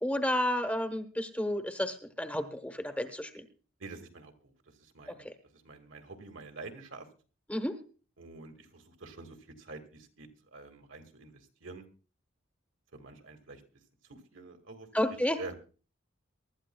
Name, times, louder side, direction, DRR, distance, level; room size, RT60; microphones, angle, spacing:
voice 1, 0.0-3.4 5.2-5.3 7.5-7.8 14.9-15.4, left 1 dB, 5° left, 7 dB, 1.0 m, -31 dB
voice 2, 3.8-7.1 8.2-11.8 12.9-13.6 14.1-14.9 15.4-15.5, right 3 dB, 70° right, 5 dB, 2.0 m, -47 dB
23.5 x 12.5 x 2.3 m, 0.36 s
head